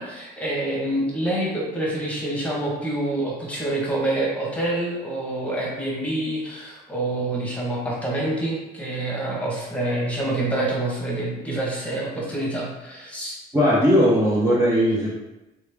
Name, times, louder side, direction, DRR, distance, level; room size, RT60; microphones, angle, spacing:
voice 1, 0.0-13.4, right 1 dB, 10° left, -4 dB, 1.3 m, -27 dB
voice 2, 13.5-15.2, equal, 15° right, -7 dB, 0.8 m, -18 dB
3.5 x 3.1 x 3.5 m, 1.0 s
cardioid pair, 110°, 17 cm